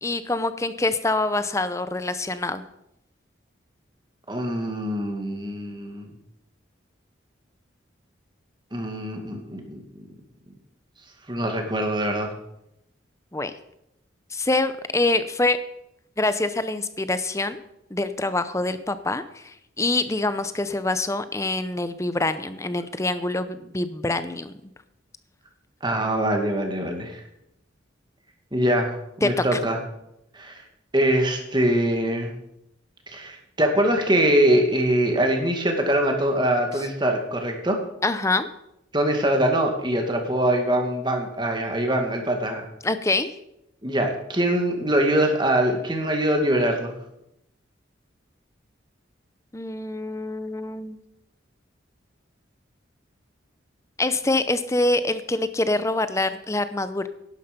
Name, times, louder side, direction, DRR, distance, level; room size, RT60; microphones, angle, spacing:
voice 1, 0.0-2.6 13.3-13.5 14.3-15.6 16.2-17.6 17.9-24.5 29.2-29.6 38.0-38.5 42.8-43.4 49.5-51.0 54.0-57.1, left 2 dB, 15° left, 12 dB, 0.6 m, -25 dB
voice 2, 4.3-6.1 8.7-9.8 11.3-12.3 25.8-27.2 28.5-29.8 30.3-30.6 30.9-32.3 33.1-37.8 38.9-42.6 43.8-46.9, right 1 dB, 25° right, 3 dB, 2.0 m, -23 dB
11.5 x 11.0 x 5.3 m, 0.83 s
head